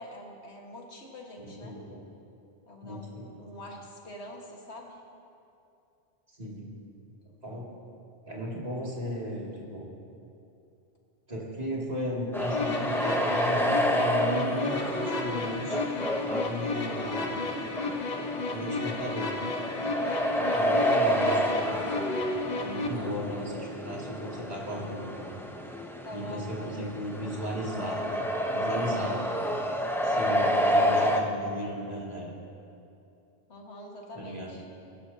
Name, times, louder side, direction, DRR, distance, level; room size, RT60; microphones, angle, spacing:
voice 1, 0.0-1.8 2.7-5.0 7.5-7.6 22.8-23.2 26.0-26.5 33.5-34.7, left 1 dB, 90° left, 0 dB, 1.9 m, -45 dB
voice 2, 1.4-2.0 2.8-3.4 6.4-6.7 7.4-7.7 8.3-9.9 11.3-15.8 16.2-17.4 18.5-19.3 20.2-22.0 22.5-25.4 26.1-28.2 28.5-29.3 30.0-32.3 34.1-34.6, equal, 40° right, -5 dB, 2.6 m, -36 dB
sound 1, 12.3-31.2, equal, 5° left, 0.6 m, -29 dB
sound 2, 12.5-22.9, left 3 dB, 45° left, 0.9 m, -33 dB
22.5 x 11.5 x 2.8 m, 2.7 s
omnidirectional pair, 1.1 m